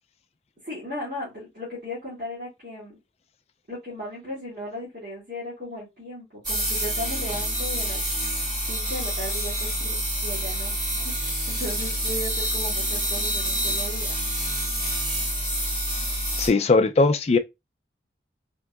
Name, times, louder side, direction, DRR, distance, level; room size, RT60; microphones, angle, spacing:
voice 1, 0.6-3.0 3.7-8.0 8.7-14.2, left 1 dB, 50° right, 2.0 m, -36 dB
sound 1, 6.4-16.5, right 1 dB, 25° right, 1.5 m, -27 dB
voice 2, 16.4-17.4, left 3 dB, 35° left, 0.4 m, -19 dB
4.3 x 2.8 x 2.4 m
head